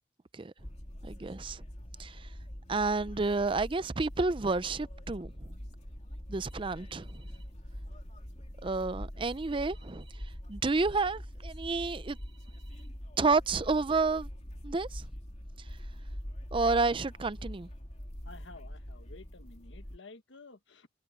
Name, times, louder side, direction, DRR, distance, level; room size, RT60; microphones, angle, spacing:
sound 1, 0.6-20.0, equal, 35° left, 2.7 m, -44 dB
voice 1, 1.0-1.6 2.0-2.3 2.7-5.5 6.3-7.3 8.6-10.2 10.5-12.2 13.2-14.3 14.6-15.1 16.5-17.7, right 3 dB, 25° right, 0.5 m, -30 dB
voice 2, 18.2-20.9, left 3 dB, 80° left, 1.3 m, -52 dB
head